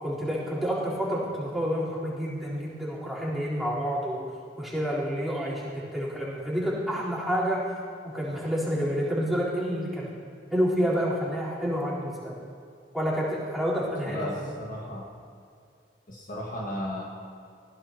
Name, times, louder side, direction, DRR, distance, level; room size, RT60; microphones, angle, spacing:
voice 1, 0.0-4.3 4.6-7.6 8.0-10.1 10.5-12.3 12.9-14.5, equal, ahead, -9 dB, 3.9 m, -29 dB
voice 2, 14.1-15.1 16.1-17.0, left 1 dB, 50° left, -3 dB, 1.8 m, -35 dB
19.5 x 16.0 x 2.9 m, 2.3 s
head